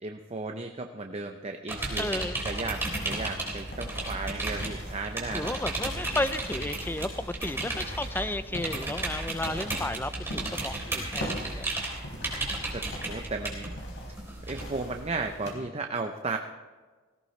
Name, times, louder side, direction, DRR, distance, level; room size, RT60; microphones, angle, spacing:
voice 1, 0.0-5.5 12.7-13.7 14.5-16.4, right 3 dB, 30° right, 4 dB, 0.7 m, -35 dB
sound 1, 1.7-15.4, right 2 dB, 10° right, 3.7 m, -34 dB
voice 2, 2.0-2.4 5.3-11.7, left 1 dB, 10° left, 12 dB, 0.5 m, -33 dB
sound 2, 2.9-15.5, equal, 65° left, 4.2 m, -44 dB
19.0 x 17.0 x 3.3 m, 1.4 s
head